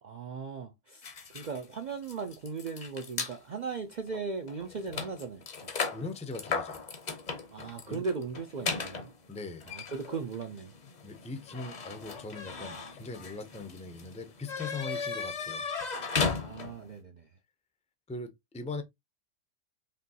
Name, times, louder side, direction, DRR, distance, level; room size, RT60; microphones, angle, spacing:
voice 1, 0.0-5.4 7.5-9.1 9.7-10.7 16.4-17.2, right 5 dB, 65° right, 0.4 m, -38 dB
sound 1, 1.0-3.4 4.1-4.2 4.5-16.9, left 5 dB, 40° left, 0.7 m, -37 dB
voice 2, 5.9-6.8 7.9-8.0 9.3-9.7 11.0-15.6 18.1-18.8, left 3 dB, 10° left, 0.3 m, -40 dB
5.1 x 2.9 x 2.7 m
omnidirectional pair, 1.4 m